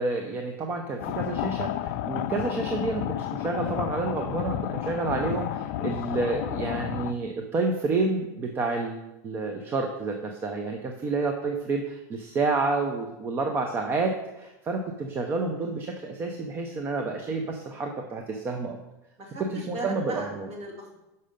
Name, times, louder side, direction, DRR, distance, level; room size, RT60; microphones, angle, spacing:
voice 1, 0.0-18.8 19.5-20.5, right 3 dB, 20° right, 3 dB, 0.6 m, -29 dB
sound 1, 1.0-7.1, left 12 dB, 55° left, 0.4 m, -31 dB
voice 2, 19.2-21.0, right 2 dB, 40° right, -4 dB, 2.4 m, -38 dB
6.4 x 5.5 x 5.1 m, 0.97 s
supercardioid pair, 150°, 10 cm